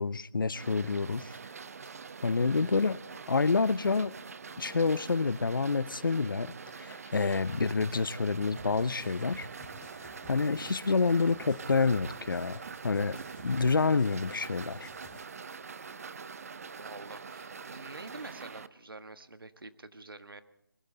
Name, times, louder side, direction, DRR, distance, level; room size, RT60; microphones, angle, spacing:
voice 1, 0.0-1.4 2.2-3.0 3.3-4.1 4.6-9.5 10.3-13.2 13.4-14.9, left 4 dB, 70° left, 0.7 m, -28 dB
sound 1, 0.5-18.7, right 5 dB, 45° right, 0.7 m, -45 dB
sound 2, 2.2-9.7, left 3 dB, 40° left, 4.6 m, -56 dB
sound 3, 8.6-15.2, left 2 dB, 10° left, 3.6 m, -54 dB
voice 2, 16.8-20.4, right 2 dB, 85° right, 1.6 m, -47 dB
21.0 x 16.0 x 3.9 m
figure-of-eight pair, 160°, 11 cm